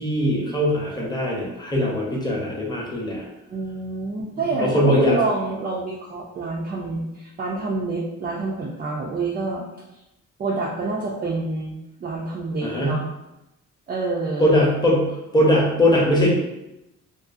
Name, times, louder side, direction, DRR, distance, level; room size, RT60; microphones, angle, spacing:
voice 1, 0.0-3.2 4.6-5.2 12.6-13.0 14.4-16.3, left 1 dB, 15° left, -3 dB, 0.7 m, -21 dB
voice 2, 3.5-9.6 10.4-13.0 13.9-14.5, right 3 dB, 30° right, -3 dB, 0.4 m, -27 dB
2.5 x 2.4 x 2.4 m, 0.92 s
cardioid pair, 115°, 30 cm